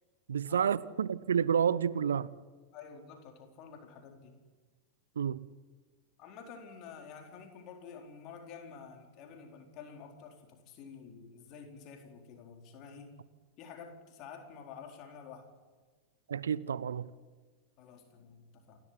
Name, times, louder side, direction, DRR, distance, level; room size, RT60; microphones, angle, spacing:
voice 1, 0.3-2.3 5.2-5.5 16.3-17.1, right 7 dB, 65° right, 0.7 m, -30 dB
voice 2, 2.7-4.4 6.2-13.1 13.6-15.5 17.8-18.8, left 6 dB, 40° left, 4.3 m, -50 dB
28.5 x 13.0 x 9.7 m
figure-of-eight pair, 90°, 0 cm